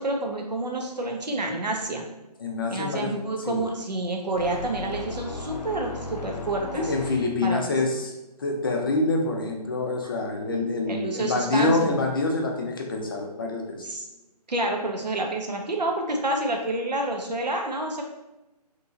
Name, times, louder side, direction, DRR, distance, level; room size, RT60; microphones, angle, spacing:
voice 1, 0.0-2.0 2.7-6.9 7.4-7.6 10.9-12.0 13.8-14.0 14.5-18.0, right 2 dB, 90° right, 2 dB, 0.7 m, -28 dB
voice 2, 2.4-3.1 3.5-3.6 6.8-8.1 8.4-13.8, left 2 dB, 35° left, 2 dB, 0.4 m, -26 dB
sound 1, 4.4-7.6, left 3 dB, 85° left, 0.6 m, -36 dB
2.9 x 2.7 x 2.4 m, 0.97 s
figure-of-eight pair, 150°, 21 cm